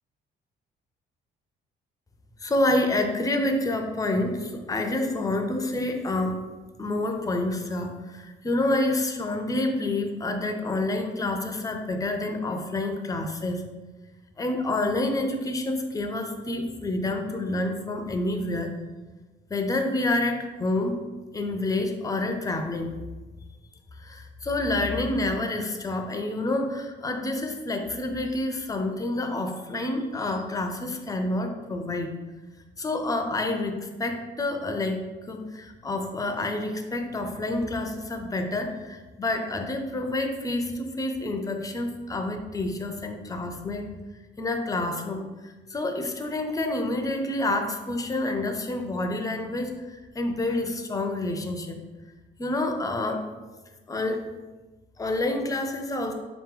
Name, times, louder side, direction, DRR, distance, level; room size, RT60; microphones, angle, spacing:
voice 1, 2.4-6.4 6.8-13.7 14.4-18.7 19.5-21.0 21.3-23.0 24.0-32.1 32.8-43.9 44.4-51.8 52.4-53.3 53.9-54.3 55.0-56.1, left 2 dB, 15° left, 5 dB, 0.5 m, -28 dB
3.9 x 2.9 x 3.7 m, 1.2 s
cardioid pair, 90°, 20 cm